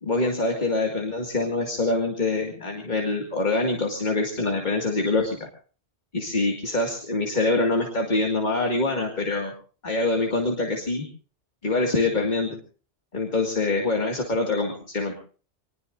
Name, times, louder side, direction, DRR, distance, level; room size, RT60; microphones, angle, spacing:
voice 1, 0.0-5.5 6.1-9.5 9.8-11.1 11.6-12.5 13.1-15.1, left 2 dB, 40° left, 1 dB, 2.3 m, -25 dB
26.0 x 20.5 x 2.7 m, 0.40 s
omnidirectional pair, 1.2 m